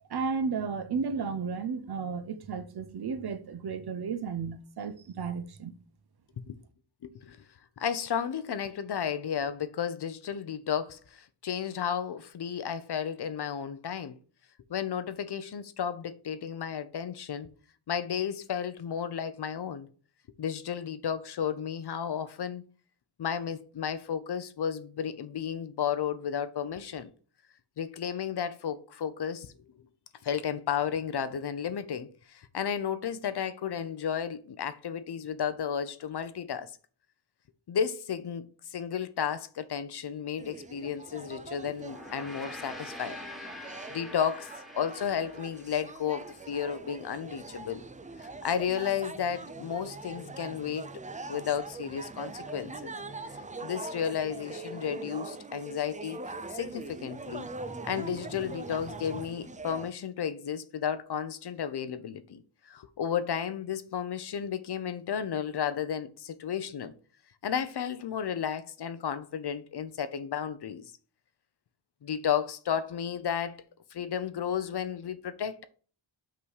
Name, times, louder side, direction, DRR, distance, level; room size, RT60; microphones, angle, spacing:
voice 1, 0.1-5.7, right 5 dB, 50° right, 0.7 m, -33 dB
voice 2, 7.0-7.4 7.8-14.1 14.7-17.5 17.9-19.9 20.4-22.6 23.2-27.1 27.8-29.5 30.2-36.7 37.7-43.2 43.9-44.5 44.8-47.8 48.2-50.9 51.3-52.9 53.2-56.2 56.5-57.5 57.8-62.4 62.7-66.9 67.4-70.9 72.0-73.6 73.9-75.6, left 8 dB, 55° left, 0.7 m, -33 dB
sound 1, 40.4-59.9, right 3 dB, 20° right, 0.3 m, -42 dB
Gong, 41.8-46.4, left 1 dB, ahead, 1.2 m, -45 dB
5.7 x 4.0 x 4.8 m
wide cardioid pair, 145°, 49 cm